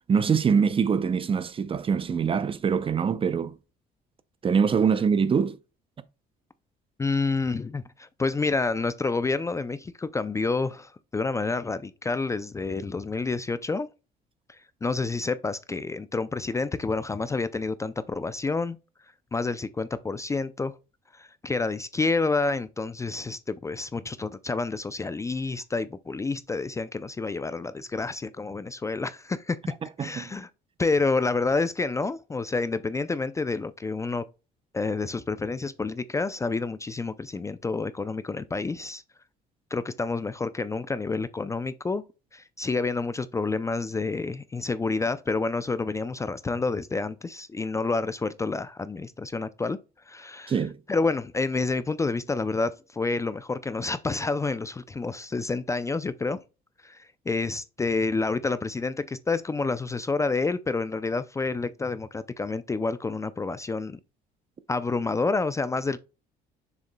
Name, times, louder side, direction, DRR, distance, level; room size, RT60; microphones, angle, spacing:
voice 1, 0.1-3.6 4.4-5.6 30.0-30.3 50.5-50.8, right 6 dB, 30° right, 0.6 m, -24 dB
voice 2, 7.0-13.9 14.5-18.8 19.3-20.7 21.1-29.6 30.0-30.5 30.8-34.2 34.7-39.0 39.7-42.0 42.3-49.8 50.1-50.5 50.9-56.4 56.8-64.0 64.7-66.0, left 3 dB, 20° left, 0.4 m, -29 dB
6.9 x 6.5 x 2.2 m
cardioid pair, 110°, 17 cm